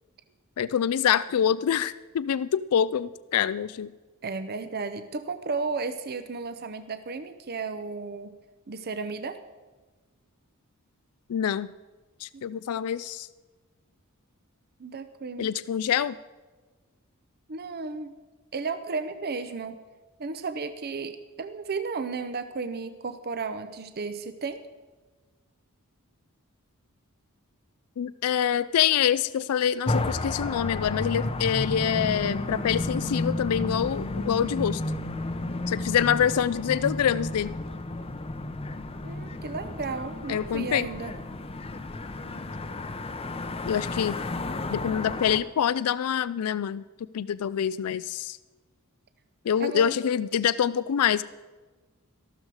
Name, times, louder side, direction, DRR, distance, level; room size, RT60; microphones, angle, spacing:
voice 1, 0.6-3.9 11.3-11.7 12.2-13.3 15.4-16.2 28.0-34.8 35.7-37.5 40.3-40.9 43.7-44.2 44.7-46.8 47.1-48.4 49.5-51.2, left 9 dB, 80° left, 17 dB, 0.4 m, -25 dB
voice 2, 4.2-8.4 8.7-9.4 12.3-12.4 14.8-15.7 17.5-18.1 18.5-19.8 20.2-24.6 39.0-41.1 49.6-50.0, right 4 dB, 45° right, 10 dB, 0.7 m, -34 dB
sound 1, 29.9-45.4, left 2 dB, 25° left, 0.7 m, -32 dB
13.5 x 12.5 x 4.8 m, 1.3 s
head